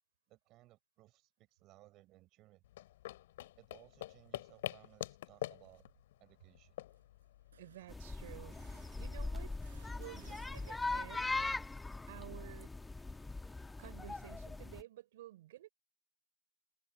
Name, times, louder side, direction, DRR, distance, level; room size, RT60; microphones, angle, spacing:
voice 1, 0.3-2.6 3.6-5.8 6.2-6.8, right 18 dB, 30° right, 6.4 m, -62 dB
sound 1, 2.6-7.8, left 15 dB, 55° left, 3.7 m, -46 dB
sound 2, 5.6-6.0 6.4-6.5 6.8-11.2 11.6-13.7, right 7 dB, 75° right, 7.7 m, -67 dB
voice 2, 7.6-9.6 10.0-11.5 12.1-12.7 13.8-15.7, right 14 dB, 55° right, 3.4 m, -53 dB
sound 3, 7.9-14.8, left 3 dB, 5° left, 1.2 m, -41 dB
hypercardioid pair, 135°, 0 cm